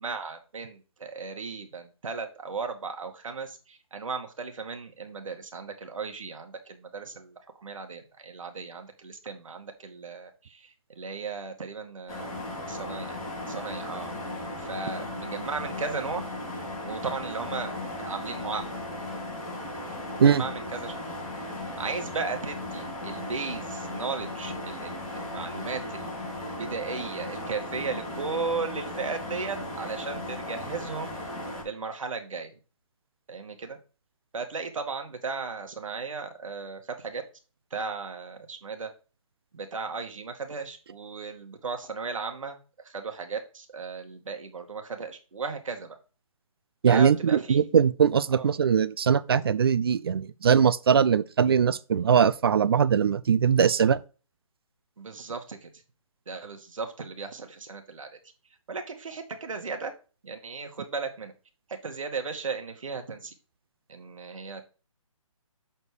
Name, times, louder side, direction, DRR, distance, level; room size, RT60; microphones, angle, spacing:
voice 1, 0.0-12.4 12.7-13.2 13.5-14.1 14.6-16.2 16.8-18.7 20.2-20.9 21.8-31.2 31.6-32.6 33.3-33.8 34.3-37.2 37.7-38.9 39.5-46.0 46.9-47.7 48.3-48.5 55.0-55.7 56.3-58.2 58.7-59.9 60.2-61.3 61.8-63.3 63.9-64.6, right 4 dB, 65° right, 1.7 m, -36 dB
sound 1, 12.1-31.6, left 1 dB, 25° left, 4.4 m, -36 dB
voice 2, 46.8-54.0, right 7 dB, 45° right, 0.4 m, -21 dB
7.0 x 4.4 x 4.7 m
hypercardioid pair, 165°, 18 cm